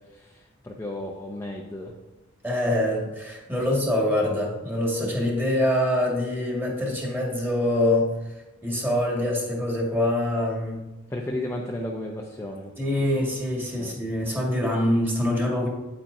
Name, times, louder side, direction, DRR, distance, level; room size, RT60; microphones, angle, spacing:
voice 1, 0.1-1.9 11.1-12.7 13.8-14.1, left 1 dB, 15° left, -2 dB, 0.7 m, -34 dB
voice 2, 2.4-8.1 8.6-10.8 12.8-15.7, left 1 dB, 10° right, -2 dB, 1.8 m, -24 dB
9.2 x 8.7 x 2.7 m, 1.0 s
head